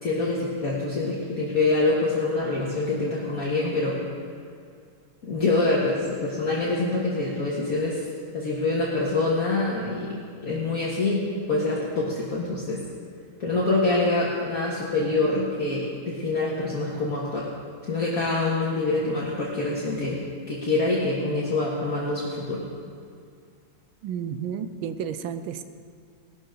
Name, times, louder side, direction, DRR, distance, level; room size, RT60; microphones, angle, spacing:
voice 1, 0.0-4.0 5.2-8.0 8.3-11.2 11.5-12.8 13.4-17.5 17.8-20.2 20.5-22.6, left 2 dB, 45° left, -6 dB, 2.1 m, -25 dB
voice 2, 24.0-25.6, right 8 dB, 75° right, 11 dB, 1.5 m, -32 dB
18.5 x 12.5 x 3.9 m, 2.2 s
omnidirectional pair, 2.2 m